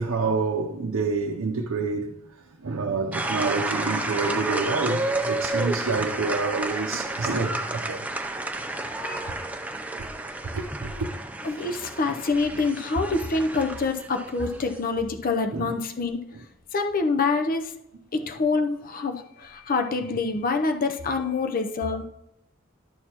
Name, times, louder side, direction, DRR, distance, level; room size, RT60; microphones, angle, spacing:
voice 1, 0.0-2.2 2.6-8.1 10.0-10.1 10.5-11.1 15.5-15.8, right 4 dB, 75° right, 0.6 m, -28 dB
sound 1, 3.1-14.8, right 2 dB, 5° right, 0.5 m, -31 dB
voice 2, 11.4-16.2 16.7-17.7 18.1-22.1, left 3 dB, 45° left, 0.6 m, -26 dB
11.5 x 6.5 x 2.9 m
head